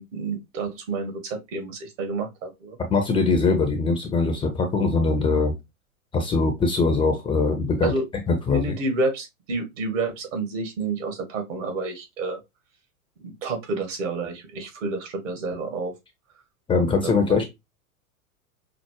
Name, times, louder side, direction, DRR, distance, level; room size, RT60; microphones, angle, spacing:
voice 1, 0.0-2.8 7.8-8.0 8.5-12.4 13.2-15.9 16.9-17.4, right 3 dB, 60° right, 1.6 m, -29 dB
voice 2, 2.9-5.5 6.1-7.9 8.3-8.8 16.7-17.4, left 4 dB, 10° left, 0.5 m, -22 dB
5.8 x 2.0 x 3.0 m
figure-of-eight pair, 95°, 43 cm